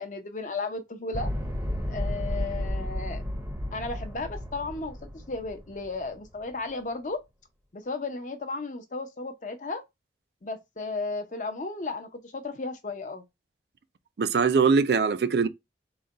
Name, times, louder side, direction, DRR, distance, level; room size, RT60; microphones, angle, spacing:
voice 1, 0.0-1.3 1.9-3.2 3.7-5.0 5.3-7.2 7.7-9.8 10.4-13.2, left 3 dB, 45° left, 0.7 m, -34 dB
sound 1, 1.1-6.3, left 1 dB, 10° right, 0.6 m, -33 dB
voice 2, 14.2-15.5, right 5 dB, 60° right, 0.4 m, -22 dB
3.9 x 2.2 x 3.8 m
head